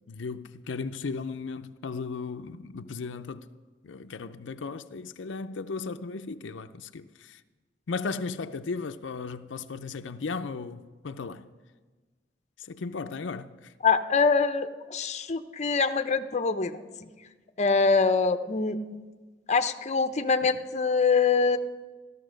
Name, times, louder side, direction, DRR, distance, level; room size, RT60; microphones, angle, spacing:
voice 1, 0.1-3.5 3.8-7.4 7.9-11.5 12.6-13.7, left 4 dB, 85° left, 0.5 m, -36 dB
voice 2, 13.8-17.1 17.6-18.8 19.5-21.6, left 4 dB, 40° left, 0.7 m, -24 dB
15.0 x 12.5 x 6.4 m
head